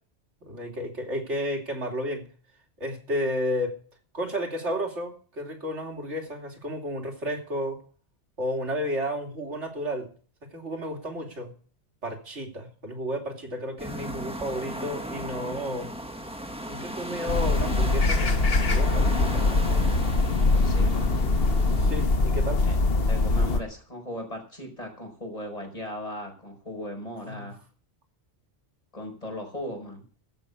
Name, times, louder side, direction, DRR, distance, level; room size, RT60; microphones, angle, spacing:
voice 1, 0.4-2.2 2.8-3.7 4.1-7.8 8.4-10.1 10.5-11.5 12.0-15.9 16.7-19.8 21.8-22.6 27.2-27.5, equal, 70° right, 2 dB, 3.2 m, -32 dB
sound 1, 13.8-22.1, equal, 5° right, 1.5 m, -36 dB
sound 2, 17.3-23.6, left 3 dB, 55° left, 1.4 m, -23 dB
voice 2, 20.5-21.2 22.7-22.8 23.1-27.6 28.9-30.0, left 1 dB, 30° left, 2 dB, 5.2 m, -37 dB
14.5 x 6.2 x 8.2 m, 0.41 s
omnidirectional pair, 1.2 m